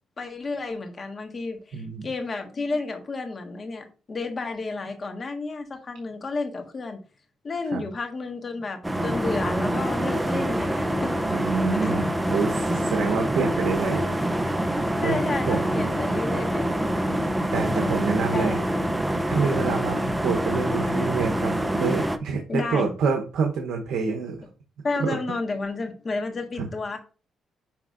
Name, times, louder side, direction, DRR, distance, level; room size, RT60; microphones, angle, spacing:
voice 1, 0.2-7.0 7.4-11.1 11.8-11.9 12.6-12.9 15.0-17.1 17.6-18.0 18.3-18.6 22.5-22.9 24.8-27.0, left 3 dB, 40° left, 4 dB, 1.6 m, -31 dB
voice 2, 1.7-2.1 7.7-7.8 11.3-14.0 15.0-15.2 15.5-15.8 17.5-18.6 19.3-24.4 25.0-25.2 26.6-26.7, right 5 dB, 70° right, 3 dB, 0.9 m, -27 dB
sound 1, 8.8-22.2, right 1 dB, 10° right, 0.6 m, -26 dB
10.5 x 3.6 x 2.5 m, 0.35 s
cardioid pair, 90°, 0 cm